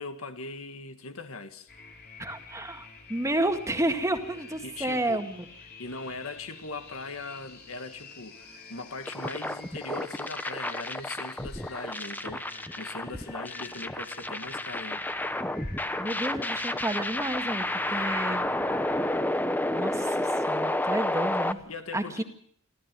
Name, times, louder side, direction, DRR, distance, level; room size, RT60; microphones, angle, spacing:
voice 1, 0.0-1.7 4.6-5.2 5.8-15.1 17.9-18.1 21.7-22.2, left 3 dB, 75° left, 1.9 m, -40 dB
sound 1, 1.7-19.2, left 4 dB, 50° left, 3.5 m, -49 dB
voice 2, 2.2-5.4 16.0-18.5 19.7-21.6 21.9-22.2, right 1 dB, 15° right, 1.9 m, -31 dB
sound 2, 9.0-21.5, left 1 dB, 10° left, 0.9 m, -31 dB
28.0 x 14.0 x 7.6 m
head